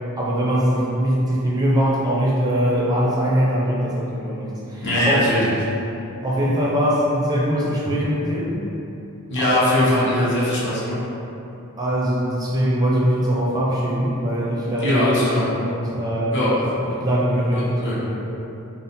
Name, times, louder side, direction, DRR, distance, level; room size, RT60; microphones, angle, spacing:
voice 1, 0.2-5.2 6.2-8.6 9.4-9.6 11.8-15.2 15.5-17.7 18.0-18.1, equal, 15° right, -6 dB, 0.5 m, -22 dB
voice 2, 4.8-5.4 9.3-11.0 14.8-15.4 16.3-16.5 17.5-18.0, left 1 dB, 55° left, -8 dB, 1.0 m, -21 dB
3.7 x 2.0 x 4.0 m, 2.9 s
head